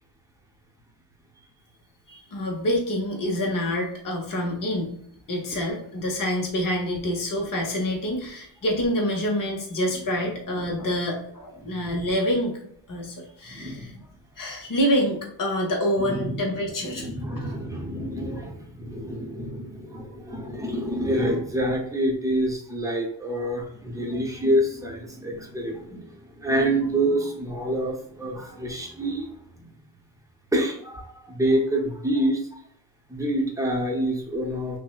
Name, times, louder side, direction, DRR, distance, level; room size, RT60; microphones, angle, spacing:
voice 1, 2.1-5.0 5.3-12.6 12.9-13.9 14.4-17.1, equal, 45° left, 0 dB, 0.9 m, -27 dB
voice 2, 13.5-14.0 16.0-26.1 26.4-29.3 29.6-29.7 30.5-32.4 33.1-34.8, right 1 dB, 5° right, 0 dB, 0.7 m, -27 dB
6.0 x 2.1 x 2.3 m, 0.65 s
wide cardioid pair, 110°, 44 cm